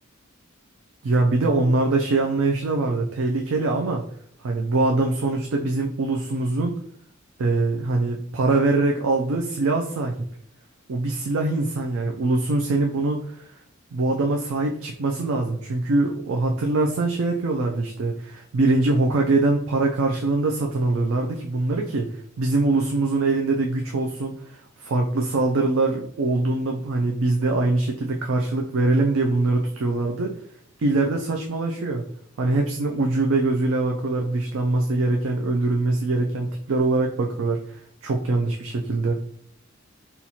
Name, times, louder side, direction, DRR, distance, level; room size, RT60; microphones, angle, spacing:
voice 1, 1.0-4.0 4.4-6.8 7.4-10.1 10.9-13.5 13.9-22.1 22.4-24.3 24.8-30.3 30.8-32.0 32.4-39.1, right 2 dB, 70° right, 2 dB, 0.4 m, -23 dB
4.3 x 2.3 x 2.8 m, 0.64 s
head